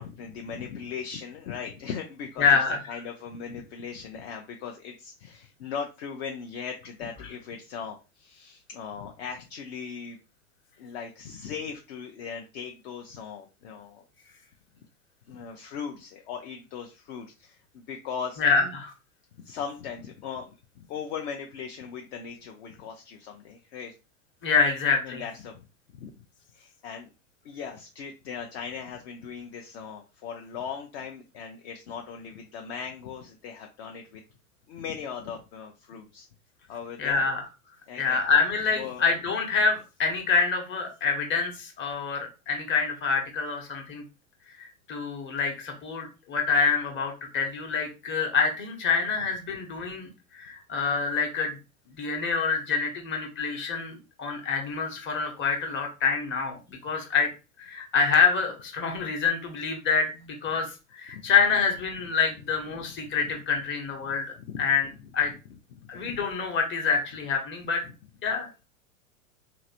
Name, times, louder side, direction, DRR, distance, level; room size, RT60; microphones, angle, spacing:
voice 1, 0.0-10.2 10.8-14.0 15.3-18.4 19.4-23.9 25.0-25.6 25.9-26.1 26.5-27.1 27.4-34.2 34.7-36.3 36.7-37.2 37.9-38.2 38.8-39.0 61.1-61.2 63.0-63.1 64.0-64.1 64.5-64.6 65.7-66.1, left 6 dB, 45° left, 3 dB, 0.6 m, -39 dB
voice 2, 2.4-2.8 18.4-18.9 24.4-25.2 37.0-37.4 37.9-44.0 44.5-50.1 50.3-51.6 51.9-57.3 57.6-60.7 60.9-64.9 65.1-65.3 65.9-67.8 68.2-68.5, left 5 dB, 25° left, 2 dB, 1.0 m, -26 dB
2.9 x 2.5 x 2.8 m, 0.30 s
hypercardioid pair, 105°, 44 cm